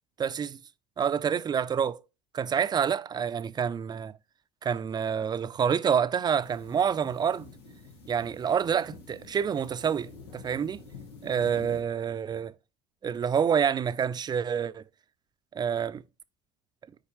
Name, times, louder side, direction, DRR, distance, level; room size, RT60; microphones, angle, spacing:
voice 1, 0.2-0.6 1.0-2.0 2.3-4.2 4.6-7.5 8.1-10.8 11.2-12.5 13.0-14.8 15.5-16.0, right 7 dB, 30° right, 0.6 m, -27 dB
sound 1, 6.4-11.8, left 4 dB, 90° left, 1.4 m, -48 dB
10.0 x 4.7 x 3.1 m
hypercardioid pair, 70°, 13 cm